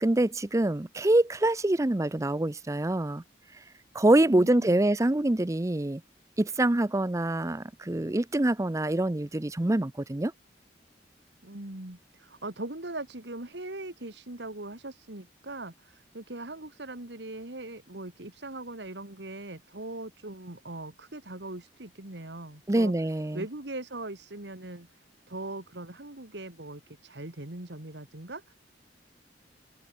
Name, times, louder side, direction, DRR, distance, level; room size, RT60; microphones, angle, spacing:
voice 1, 0.0-3.2 3.9-6.0 6.4-10.3 22.7-23.4, right 1 dB, 15° right, 0.6 m, -25 dB
voice 2, 4.3-4.8 11.4-22.9 23.3-24.9 25.3-28.5, right 2 dB, 70° right, 2.5 m, -40 dB
head